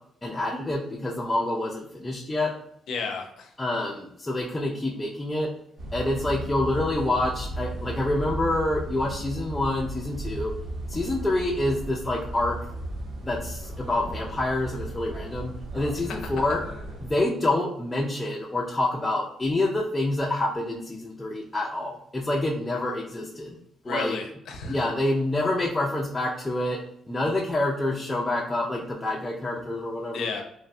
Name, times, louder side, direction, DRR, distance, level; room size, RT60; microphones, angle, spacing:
voice 1, 0.2-2.5 3.6-5.5 5.9-10.5 10.9-12.6 13.2-16.6 17.0-23.6 23.8-24.2 24.7-26.8 27.1-30.3, left 1 dB, 15° left, -3 dB, 0.4 m, -27 dB
voice 2, 2.9-3.5 16.1-16.4 23.9-24.8 30.1-30.4, left 4 dB, 75° left, 3 dB, 0.5 m, -32 dB
sound 1, 5.8-17.1, right 1 dB, 60° right, 0.9 m, -36 dB
3.0 x 2.1 x 2.6 m, 0.72 s
cardioid pair, 90°, 0 cm